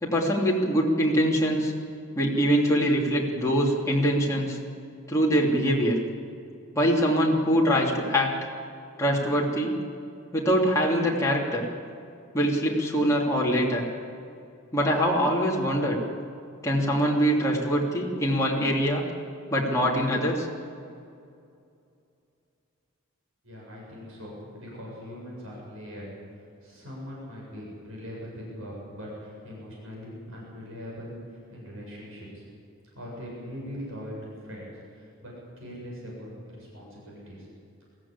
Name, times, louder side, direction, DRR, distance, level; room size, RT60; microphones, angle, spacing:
voice 1, 0.0-1.7 2.1-4.6 5.1-6.0 6.7-8.3 9.0-9.7 10.3-11.6 12.3-13.8 14.7-16.0 16.6-19.0 19.5-20.5, equal, 15° left, -4 dB, 3.0 m, -23 dB
voice 2, 23.4-32.4 32.9-37.5, equal, 70° right, -4 dB, 7.6 m, -41 dB
22.0 x 15.5 x 8.7 m, 2.5 s
head